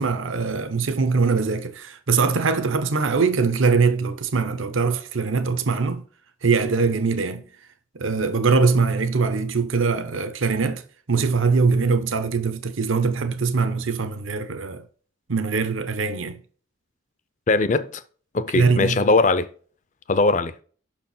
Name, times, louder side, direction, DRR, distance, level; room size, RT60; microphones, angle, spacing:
voice 1, 0.0-6.0 6.4-7.5 7.9-14.8 15.3-16.4 18.5-19.1, right 4 dB, 75° right, 0.7 m, -22 dB
voice 2, 17.5-18.0 18.3-19.5 20.1-20.6, left 3 dB, 35° left, 0.4 m, -20 dB
6.1 x 4.5 x 5.4 m
head